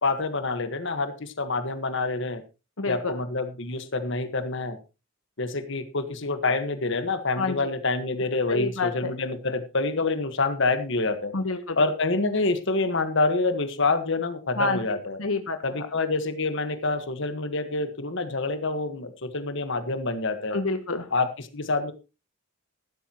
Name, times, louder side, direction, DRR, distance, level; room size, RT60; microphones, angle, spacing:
voice 1, 0.0-2.4 2.9-4.8 5.4-11.3 11.7-15.2 15.6-20.6 21.1-21.9, left 3 dB, 65° left, 9 dB, 1.5 m, -27 dB
voice 2, 2.8-3.1 7.4-7.6 8.5-9.1 11.3-11.8 14.6-14.8 15.2-15.6 20.5-21.1, left 3 dB, 85° left, 7 dB, 1.2 m, -27 dB
15.0 x 12.5 x 3.0 m, 0.29 s
head